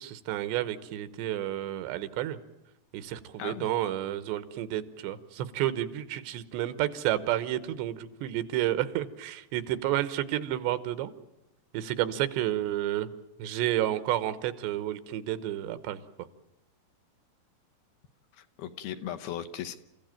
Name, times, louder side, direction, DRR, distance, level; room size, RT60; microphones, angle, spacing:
voice 1, 0.0-2.4 2.9-11.1 11.7-13.1 13.4-16.0, right 13 dB, 90° right, 14 dB, 3.4 m, -30 dB
voice 2, 3.4-3.7 18.3-19.8, left 10 dB, 70° left, 8 dB, 2.7 m, -37 dB
29.5 x 15.5 x 9.1 m, 0.93 s
omnidirectional pair, 4.9 m